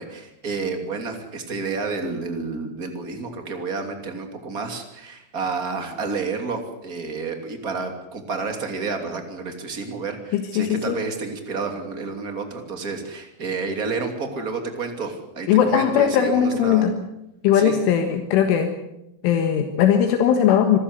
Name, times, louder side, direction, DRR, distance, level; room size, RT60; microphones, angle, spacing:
voice 1, 0.0-16.9 17.5-17.8, right 4 dB, 25° right, 5 dB, 2.2 m, -30 dB
voice 2, 10.3-11.0 15.5-16.9 17.4-18.7 19.2-20.8, left 9 dB, 80° left, 5 dB, 4.0 m, -19 dB
26.5 x 14.5 x 8.1 m, 0.86 s
omnidirectional pair, 5.7 m